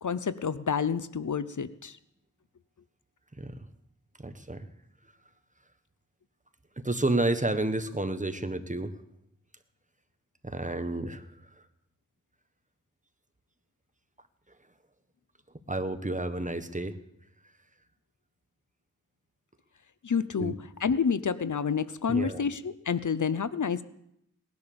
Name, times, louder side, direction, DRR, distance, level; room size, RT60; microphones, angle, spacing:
voice 1, 0.0-2.0 20.0-20.5 20.8-23.8, left 6 dB, 70° left, 15 dB, 0.7 m, -29 dB
voice 2, 4.2-4.7 6.8-8.9 10.4-11.2 15.7-16.9 20.4-20.5 22.1-22.4, right 2 dB, 25° right, 9 dB, 1.4 m, -30 dB
19.0 x 11.0 x 7.0 m, 0.78 s
wide cardioid pair, 55°, 31 cm